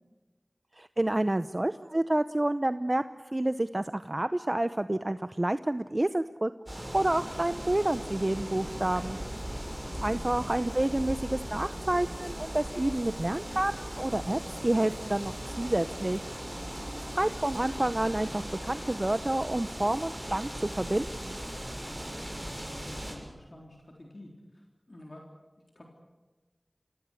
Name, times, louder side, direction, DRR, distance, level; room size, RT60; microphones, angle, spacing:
voice 1, 0.8-6.5 6.9-9.2 10.0-16.2 16.9-21.4, right 1 dB, 40° right, 12 dB, 0.7 m, -29 dB
sound 1, 6.7-23.1, equal, 15° right, 7.2 m, -38 dB
voice 2, 9.8-10.2 22.6-25.2 25.8-25.9, left 1 dB, 60° left, 0 dB, 3.6 m, -49 dB
26.0 x 17.5 x 8.5 m, 1.2 s
wide cardioid pair, 40°, 0 cm